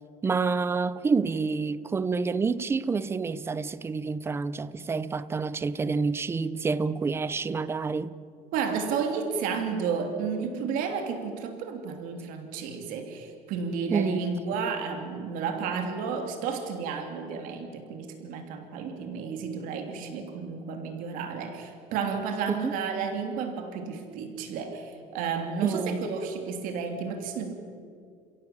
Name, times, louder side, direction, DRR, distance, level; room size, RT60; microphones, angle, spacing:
voice 1, 0.2-8.2 13.9-14.3 22.5-22.7 25.6-26.1, right 4 dB, 15° right, 0.7 m, -28 dB
voice 2, 8.5-27.5, right 6 dB, 75° right, 3.1 m, -32 dB
29.5 x 16.5 x 8.6 m
cardioid pair, 160°, 14 cm